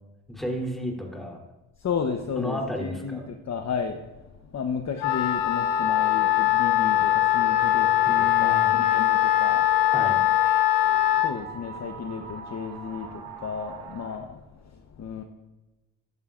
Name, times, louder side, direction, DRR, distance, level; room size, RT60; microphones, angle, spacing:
voice 1, 0.3-1.4 2.4-3.3 8.1-8.8 9.9-10.2, equal, ahead, -1 dB, 3.2 m, -32 dB
voice 2, 1.8-3.2 3.5-4.0 4.5-7.9 8.2-9.6 11.2-13.1 13.4-14.2 15.0-15.2, left 6 dB, 35° left, 5 dB, 1.0 m, -32 dB
Wind instrument woodwind instrument, 5.0-11.4, left 13 dB, 90° left, 1.0 m, -21 dB
sound 1, 6.1-14.2, right 5 dB, 90° right, 2.3 m, -43 dB
15.5 x 11.0 x 2.5 m, 1.1 s
supercardioid pair, 65°, 44 cm